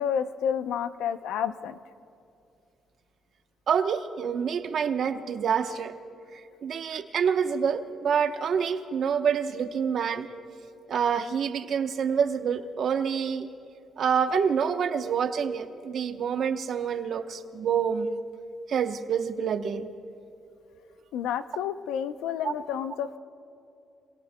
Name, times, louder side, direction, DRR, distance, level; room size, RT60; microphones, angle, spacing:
voice 1, 0.0-1.8 21.1-23.2, left 8 dB, 90° left, 11 dB, 0.6 m, -30 dB
voice 2, 3.7-5.9 6.3-10.3 10.9-13.5 14.0-18.1 18.7-19.9 22.4-22.5, right 7 dB, 60° right, 8 dB, 0.9 m, -27 dB
26.5 x 23.5 x 2.2 m, 2.7 s
cardioid pair, 90°, 0 cm